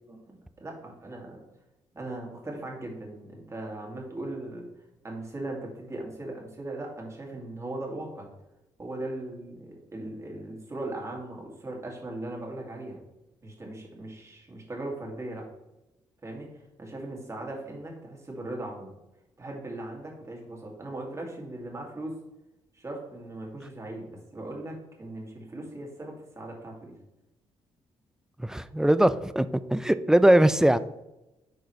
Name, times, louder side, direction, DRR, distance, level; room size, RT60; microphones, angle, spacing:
voice 1, 0.1-1.5 1.9-8.3 8.8-13.0 13.4-15.5 16.2-18.9 19.4-22.2 22.7-26.9, right 2 dB, 30° right, -1 dB, 2.2 m, -39 dB
voice 2, 28.4-30.8, right 1 dB, 5° right, 14 dB, 0.3 m, -21 dB
7.7 x 4.7 x 3.1 m, 0.96 s
cardioid pair, 75°, 11 cm